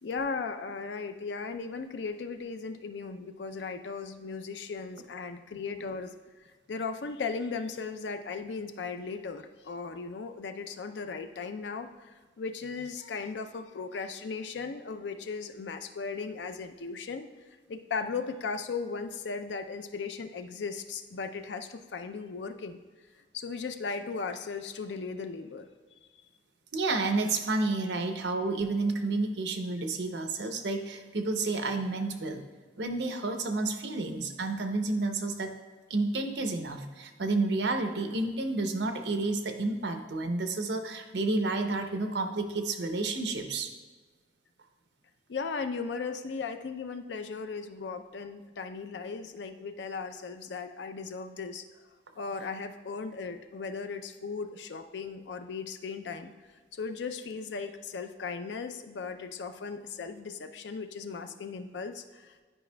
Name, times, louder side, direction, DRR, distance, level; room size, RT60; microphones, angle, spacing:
voice 1, 0.0-6.1 6.7-17.3 17.7-22.8 23.3-26.0 45.3-51.6 52.2-56.3 56.7-62.4, left 4 dB, 80° left, 9 dB, 0.5 m, -37 dB
voice 2, 26.7-32.4 32.8-35.5 35.9-43.7, right 3 dB, 80° right, 6 dB, 0.7 m, -30 dB
11.0 x 5.0 x 2.2 m, 1.4 s
head